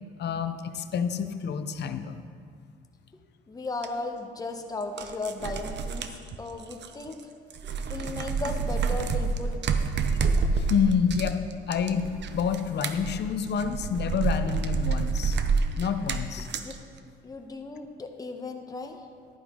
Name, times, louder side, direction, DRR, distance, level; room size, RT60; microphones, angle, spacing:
voice 1, 0.2-2.2 10.5-11.4 11.7-15.4 15.8-16.5, left 7 dB, 60° left, 9 dB, 0.7 m, -28 dB
voice 2, 3.5-7.2 7.9-9.6 16.6-16.7 17.2-19.0, left 3 dB, 20° left, 4 dB, 0.9 m, -36 dB
sound 1, 3.8-3.9 4.8-7.2 7.5-16.7, right 5 dB, 60° right, 0.7 m, -28 dB
11.5 x 10.0 x 3.7 m, 2.1 s
cardioid pair, 90°, 20 cm